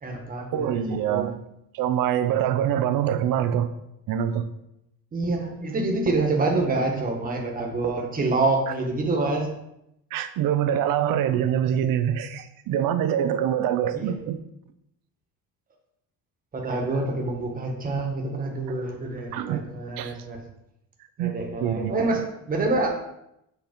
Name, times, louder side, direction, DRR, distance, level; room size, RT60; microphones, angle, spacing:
voice 1, 0.0-1.3 5.1-9.5 13.9-14.2 16.5-20.4 21.2-22.9, right 2 dB, 25° right, 1 dB, 1.4 m, -27 dB
voice 2, 0.5-1.3 1.7-3.7 4.1-4.5 10.1-14.4 18.7-18.8 19.3-19.7 20.0-20.1 21.2-22.1, right 10 dB, 70° right, 11 dB, 0.8 m, -25 dB
8.2 x 4.2 x 5.2 m, 0.83 s
cardioid pair, 160°, 36 cm